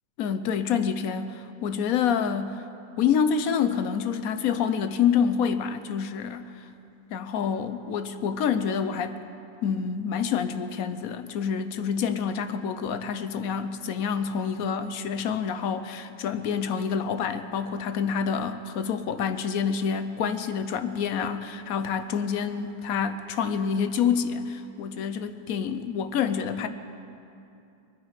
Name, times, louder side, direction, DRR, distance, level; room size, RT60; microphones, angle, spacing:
voice 1, 0.2-2.6 3.0-6.6 7.1-9.2 9.6-26.7, left 7 dB, 65° left, 10 dB, 0.9 m, -27 dB
24.5 x 9.5 x 4.9 m, 2.7 s
omnidirectional pair, 1.9 m